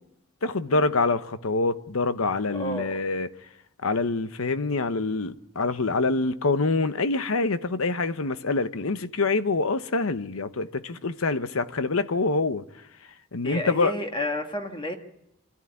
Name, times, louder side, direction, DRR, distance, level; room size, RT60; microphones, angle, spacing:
voice 1, 0.4-3.3 3.8-12.6 13.3-13.9, left 3 dB, 85° left, 0.9 m, -25 dB
voice 2, 2.5-3.0 13.4-15.0, left 1 dB, 25° left, 1.6 m, -31 dB
24.5 x 13.5 x 9.6 m
head